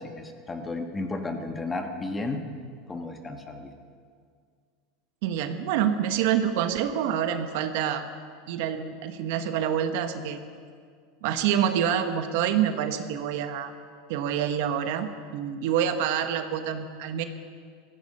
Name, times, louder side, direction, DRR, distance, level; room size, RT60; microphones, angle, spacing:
voice 1, 0.0-2.4 2.9-3.8, left 2 dB, 15° left, 5 dB, 1.5 m, -33 dB
voice 2, 5.2-8.0 8.5-10.4 11.2-13.7 14.1-17.2, right 9 dB, 65° right, 8 dB, 1.3 m, -27 dB
16.0 x 15.5 x 5.5 m, 2.1 s
supercardioid pair, 135°, 0 cm